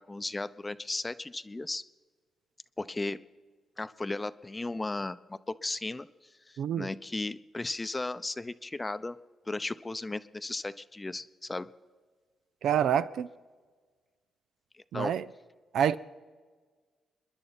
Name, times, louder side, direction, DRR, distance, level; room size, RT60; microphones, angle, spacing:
voice 1, 0.0-1.8 2.8-3.2 3.8-6.1 6.5-9.2 9.5-11.7 14.7-15.1, left 2 dB, 25° left, 0.6 m, -35 dB
voice 2, 6.6-6.9 12.6-13.3 14.9-15.2 15.7-16.0, right 9 dB, 75° right, 0.4 m, -27 dB
27.5 x 10.5 x 4.1 m
supercardioid pair, 50°, 0 cm